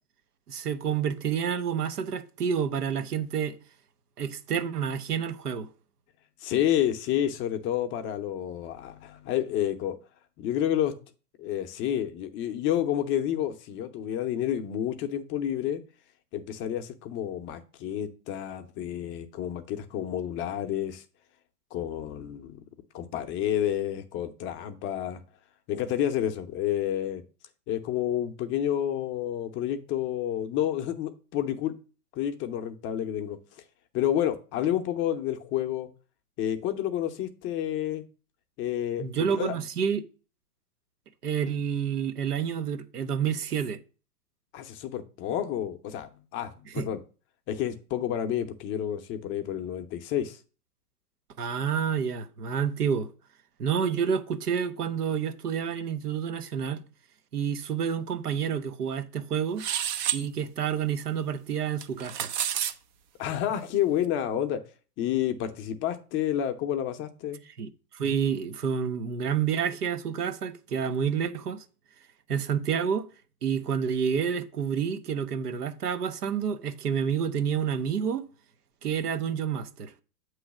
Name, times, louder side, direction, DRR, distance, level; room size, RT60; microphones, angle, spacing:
voice 1, 0.5-3.5 4.2-5.7 39.0-40.0 41.2-43.8 46.8-46.9 51.4-53.1 53.6-56.8 57.3-59.6 60.1-62.3 67.6-67.7 67.9-71.6 72.3-73.1 73.4-78.2 78.8-79.9, right 7 dB, 85° right, 0.9 m, -29 dB
voice 2, 6.4-10.0 10.4-10.9 11.4-15.8 16.3-21.0 21.7-22.6 22.9-25.2 25.7-27.2 27.7-31.7 32.1-33.4 33.9-35.9 36.4-38.0 38.6-39.1 39.4-39.6 44.5-47.0 47.5-50.4 63.2-64.6 65.0-67.4, left 11 dB, 25° left, 0.6 m, -29 dB
sound 1, 59.6-60.2 61.8-62.7, right 10 dB, 35° right, 0.4 m, -29 dB
7.8 x 3.1 x 5.8 m
hypercardioid pair, 115°, 46 cm